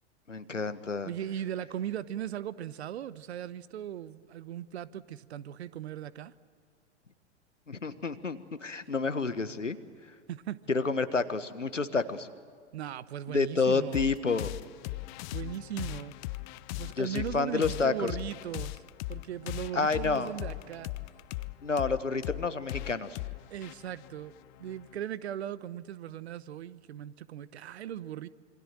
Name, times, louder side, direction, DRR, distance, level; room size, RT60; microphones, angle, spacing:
voice 1, 0.3-1.1 7.7-9.8 10.7-12.3 13.3-14.5 17.0-18.1 19.7-20.3 21.6-23.2, left 4 dB, 90° left, 12 dB, 1.4 m, -29 dB
voice 2, 1.0-6.3 10.3-10.6 12.7-14.1 15.3-16.2 16.8-18.8 19.1-20.9 23.5-24.3 24.6-28.3, right 10 dB, 60° right, 18 dB, 1.0 m, -38 dB
sound 1, 13.9-25.0, left 20 dB, 40° left, 0.8 m, -39 dB
27.0 x 24.0 x 7.5 m, 2.1 s
figure-of-eight pair, 100°, 36 cm